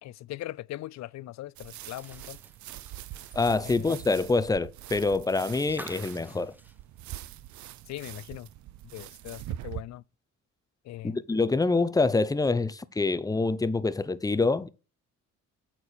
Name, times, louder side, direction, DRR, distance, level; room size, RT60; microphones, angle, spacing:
voice 1, 0.0-2.4 3.6-4.0 7.9-8.5 8.9-10.0 10.8-11.2, left 15 dB, 65° left, 0.5 m, -40 dB
sound 1, 1.6-9.8, right 14 dB, 70° right, 0.5 m, -43 dB
sound 2, 1.8-7.8 8.2-8.3 9.6-9.7, right 1 dB, 5° right, 0.9 m, -51 dB
voice 2, 3.3-6.5 11.0-14.7, left 3 dB, 10° left, 0.6 m, -26 dB
8.6 x 4.5 x 6.8 m
cardioid pair, 90°, 30 cm